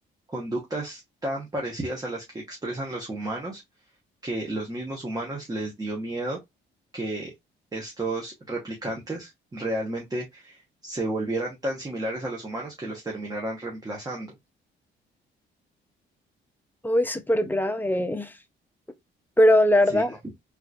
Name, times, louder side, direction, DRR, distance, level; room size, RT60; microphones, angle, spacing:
voice 1, 0.3-3.6 4.2-6.4 6.9-7.3 7.7-14.3 19.9-20.0, right 1 dB, 20° right, 1.1 m, -32 dB
voice 2, 16.8-18.3 19.4-20.2, left 1 dB, 10° left, 0.6 m, -21 dB
3.6 x 3.2 x 2.5 m
cardioid pair, 90°, 20 cm